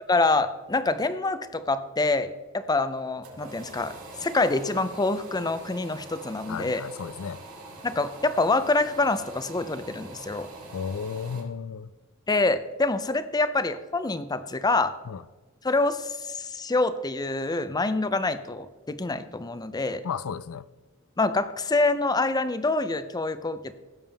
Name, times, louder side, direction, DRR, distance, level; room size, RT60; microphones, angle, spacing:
voice 1, 0.1-6.8 7.8-10.5 12.3-15.0 15.6-20.0 21.2-23.7, left 3 dB, 20° left, 0.5 m, -26 dB
sound 1, 3.0-11.4, right 2 dB, 75° right, 3.6 m, -44 dB
voice 2, 6.5-7.4 10.7-11.9 15.1-15.2 20.0-20.7, left 6 dB, 75° left, 0.4 m, -33 dB
16.5 x 7.0 x 3.5 m
head